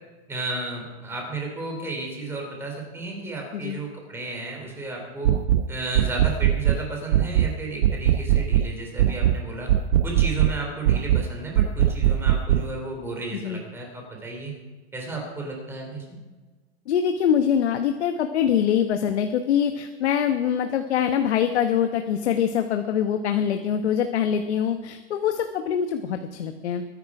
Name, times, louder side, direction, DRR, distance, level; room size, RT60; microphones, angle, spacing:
voice 1, 0.3-5.3 5.7-9.7 10.0-14.5 14.9-16.2, right 2 dB, 5° right, 0 dB, 3.2 m, -33 dB
sound 1, 5.2-5.6 5.9-6.8 7.1-7.5 7.8-8.7 9.0-9.4 9.7-10.6 10.9-11.3 11.6-12.7, right 11 dB, 65° right, 0.8 m, -20 dB
voice 2, 16.9-26.8, left 8 dB, 85° left, 6 dB, 1.3 m, -24 dB
22.5 x 10.5 x 4.9 m, 1.3 s
supercardioid pair, 175°, 33 cm